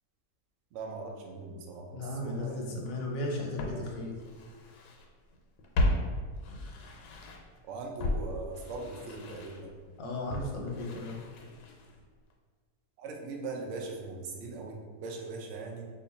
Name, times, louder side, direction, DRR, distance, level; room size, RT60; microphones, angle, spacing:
voice 1, 0.7-2.8 3.3-3.4 3.7-3.9 7.6-9.7 13.0-15.9, right 3 dB, 75° right, 0 dB, 0.7 m, -40 dB
voice 2, 1.9-4.1 10.0-11.2, left 1 dB, 65° left, -1 dB, 0.9 m, -35 dB
Walk footsteps, 2.9-3.0 3.6-5.1 5.3-7.6 8.0-12.0 12.3-12.4, left 1 dB, 80° left, 1.2 m, -35 dB
2.8 x 2.6 x 4.0 m, 1.5 s
omnidirectional pair, 1.8 m